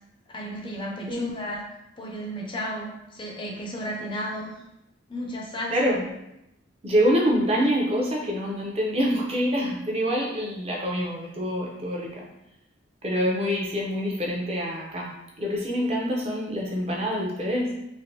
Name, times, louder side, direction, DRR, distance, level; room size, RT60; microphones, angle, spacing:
voice 1, 0.3-1.6 2.0-4.6 5.1-6.0, equal, 25° left, -1 dB, 0.4 m, -33 dB
voice 2, 5.7-6.1 6.8-12.2 13.0-15.1 15.4-17.7, equal, 30° right, -2 dB, 0.6 m, -26 dB
3.3 x 2.5 x 2.7 m, 0.85 s
head